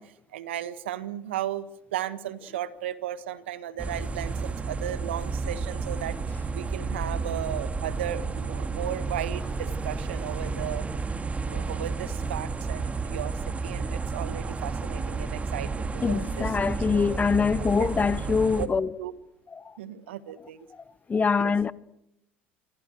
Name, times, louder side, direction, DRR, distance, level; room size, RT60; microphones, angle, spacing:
voice 1, 0.0-6.2 6.5-10.9 11.4-17.1 17.8-17.9 18.5-18.7 19.0-19.1 19.8-20.7 21.4-21.5, right 11 dB, 75° right, 1.6 m, -35 dB
sound 1, 3.8-18.7, right 4 dB, 20° right, 2.4 m, -31 dB
voice 2, 16.0-18.9 19.5-19.7 21.1-21.7, left 5 dB, 25° left, 1.1 m, -24 dB
27.0 x 24.0 x 6.5 m
hypercardioid pair, 70°, 6 cm